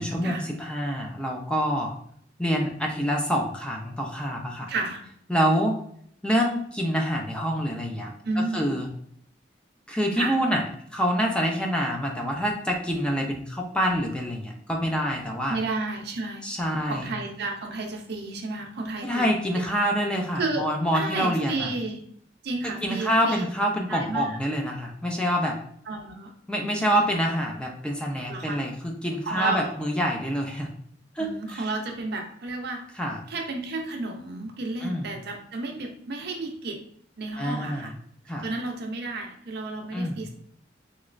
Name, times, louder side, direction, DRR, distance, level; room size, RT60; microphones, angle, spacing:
voice 1, 0.0-1.9 2.4-4.7 5.3-5.8 6.2-8.9 9.9-10.6 10.9-15.6 16.4-17.1 19.0-21.7 22.8-25.6 26.5-30.7 31.2-31.6 33.0-33.2 34.8-35.0 37.4-37.9 38.3-38.5 39.9-40.2, equal, 5° left, 0 dB, 0.4 m, -26 dB
voice 2, 4.7-5.0 8.2-8.7 10.1-10.4 15.5-16.4 16.9-19.3 19.5-19.6 20.3-22.0 22.4-23.4 23.9-24.4 25.9-26.3 26.9-27.0 28.3-28.6 29.2-29.7 31.2-32.9 33.3-36.9 37.2-37.9 38.4-40.3, right 3 dB, 60° right, 3 dB, 0.5 m, -32 dB
3.1 x 3.0 x 2.5 m, 0.65 s
head